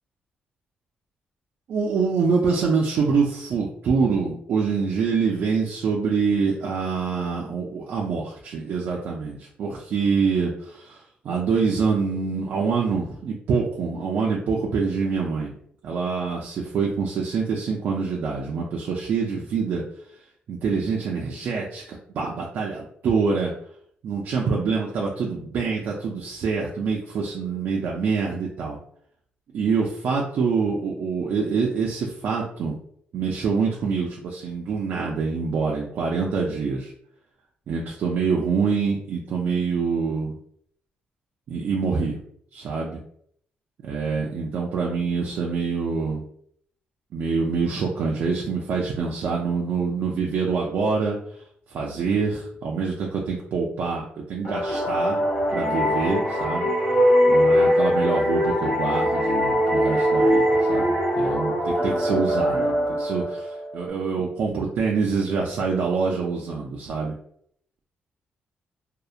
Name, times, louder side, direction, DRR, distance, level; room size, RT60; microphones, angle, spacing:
voice 1, 1.7-15.5 15.8-19.8 20.5-23.5 24.0-28.8 29.5-32.8 33.1-36.9 37.7-40.3 41.5-42.2 42.5-43.0 43.8-46.2 47.1-51.2 51.7-55.2 55.5-56.7 57.3-67.1, right 5 dB, 55° right, -2 dB, 0.4 m, -25 dB
sound 1, 54.4-63.9, equal, 25° left, 0.7 m, -22 dB
2.7 x 2.0 x 2.4 m, 0.66 s
cardioid pair, 175°, 3 cm